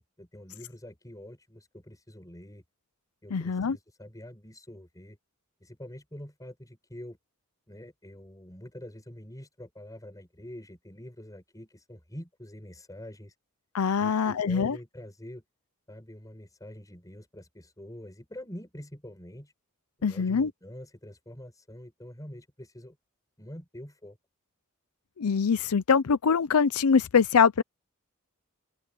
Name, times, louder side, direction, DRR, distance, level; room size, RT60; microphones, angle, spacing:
voice 1, 0.0-2.6 3.2-5.2 5.6-7.2 7.7-13.3 14.0-15.4 15.9-19.5 20.0-23.0 23.4-24.2, left 1 dB, 15° left, 6.2 m, -45 dB
voice 2, 3.3-3.8 13.7-14.8 20.0-20.5 25.2-27.6, left 6 dB, 85° left, 0.5 m, -23 dB
open air
head